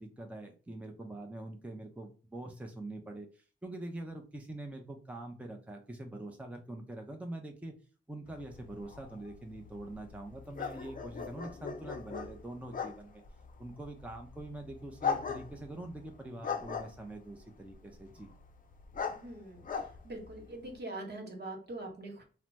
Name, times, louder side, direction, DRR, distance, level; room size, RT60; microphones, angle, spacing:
voice 1, 0.0-7.7 8.1-13.2 13.6-18.3, right 1 dB, 5° right, 3 dB, 0.6 m, -44 dB
sound 1, 8.3-20.8, left 6 dB, 45° left, 0.5 m, -41 dB
voice 2, 19.1-19.7 20.0-22.2, right 2 dB, 55° right, 2 dB, 1.1 m, -43 dB
2.8 x 2.0 x 3.3 m, 0.37 s
cardioid pair, 55°, 20 cm